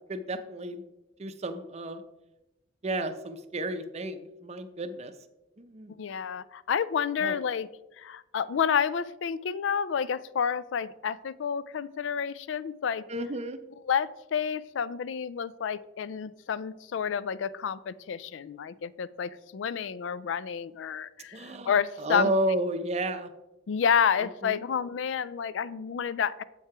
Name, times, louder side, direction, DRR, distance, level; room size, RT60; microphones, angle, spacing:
voice 1, 0.1-0.8 1.2-2.0 2.8-5.1 5.6-5.9 7.2-7.4 13.1-13.6 21.3-23.3 24.4-24.6, right 1 dB, 35° right, 9 dB, 0.6 m, -32 dB
voice 2, 6.0-7.7 8.0-13.0 13.8-22.3 23.7-26.4, left 7 dB, 70° left, 17 dB, 0.4 m, -29 dB
7.9 x 4.6 x 4.8 m, 0.96 s
head